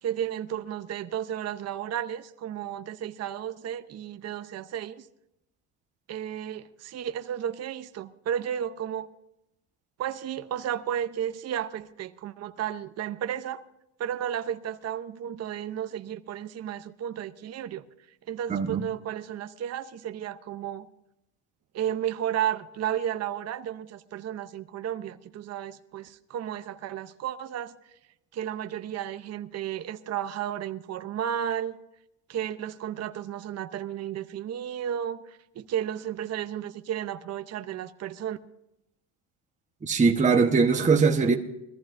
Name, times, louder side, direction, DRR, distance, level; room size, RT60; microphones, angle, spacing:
voice 1, 0.0-5.0 6.1-9.1 10.0-13.6 14.0-17.8 18.3-20.9 21.7-27.8 28.3-31.8 32.3-38.4, right 10 dB, 35° right, 0.7 m, -33 dB
voice 2, 18.5-18.8 39.8-41.3, right 5 dB, 15° right, 1.1 m, -21 dB
21.5 x 14.0 x 2.6 m
cardioid pair, 120°, 45 cm